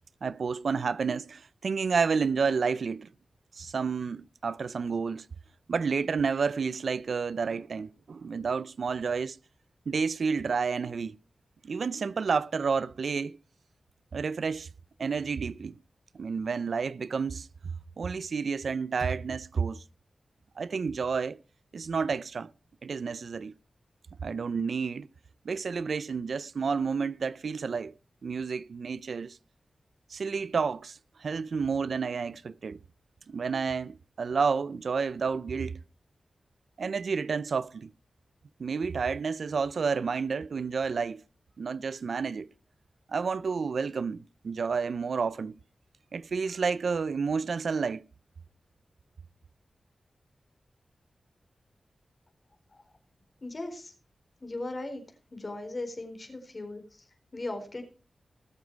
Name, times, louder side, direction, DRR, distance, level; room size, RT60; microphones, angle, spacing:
voice 1, 0.2-3.1 3.6-5.3 5.7-9.4 9.9-11.2 11.6-13.4 14.1-14.7 15.0-15.8 16.1-17.5 18.0-19.8 20.6-21.4 21.7-22.5 22.8-23.5 24.2-25.1 25.4-27.9 28.2-29.4 30.1-32.8 33.3-35.8 36.8-37.9 38.6-41.2 41.6-42.5 43.1-45.5 46.1-48.0, right 5 dB, 75° right, 0.6 m, -30 dB
voice 2, 53.4-53.9 54.4-55.0 55.3-57.8, left 2 dB, 45° left, 4.3 m, -38 dB
20.0 x 7.3 x 4.7 m
cardioid pair, 60°, 0 cm